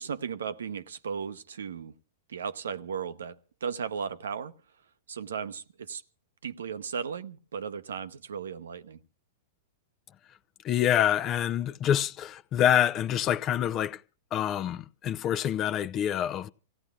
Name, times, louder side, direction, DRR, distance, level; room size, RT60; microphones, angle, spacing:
voice 1, 0.0-2.0 2.3-4.6 5.1-6.0 6.4-9.0, right 6 dB, 85° right, 0.8 m, -36 dB
voice 2, 10.6-14.0 14.3-16.5, left 10 dB, 35° left, 0.7 m, -26 dB
28.5 x 16.5 x 2.4 m
hypercardioid pair, 120°, 0 cm